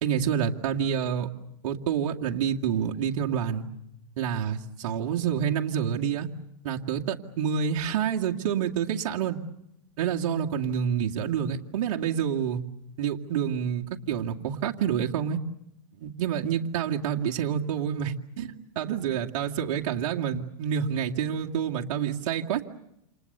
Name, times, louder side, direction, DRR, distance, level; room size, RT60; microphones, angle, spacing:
voice 1, 0.0-1.3 1.6-3.6 4.2-6.3 6.6-9.4 10.0-12.6 13.0-15.4 16.0-22.7, right 8 dB, 60° right, 0 dB, 2.2 m, -28 dB
29.5 x 27.5 x 6.8 m, 0.81 s
hypercardioid pair, 130°, 19 cm